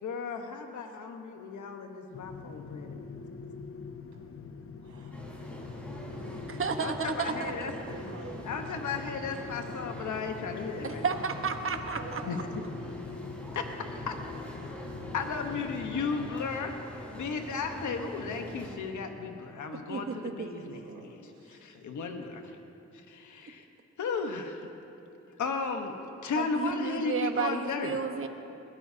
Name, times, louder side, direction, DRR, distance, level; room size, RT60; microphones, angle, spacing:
voice 1, 0.0-3.2 6.8-7.7 8.4-11.0 12.2-12.4 13.5-13.6 14.1-14.2 15.1-20.8 21.1-21.2 21.5-22.6 23.1-23.6 24.0-24.7 25.4-25.9 26.2-28.0, left 5 dB, 85° left, 4 dB, 1.2 m, -35 dB
sound 1, 2.1-16.3, left 5 dB, 50° left, 0.8 m, -44 dB
voice 2, 4.8-5.3 6.1-6.5 7.3-8.5 12.0-12.3 20.6-21.0 21.3-21.6, right 4 dB, 75° right, -1 dB, 3.4 m, -47 dB
sound 2, 5.1-18.8, equal, 5° left, 3.9 m, -44 dB
voice 3, 6.5-7.7 10.8-12.2 19.9-20.8 26.4-28.3, right 5 dB, 45° right, 6 dB, 1.2 m, -32 dB
22.0 x 16.0 x 2.8 m, 2.9 s
cardioid pair, 75°, 29 cm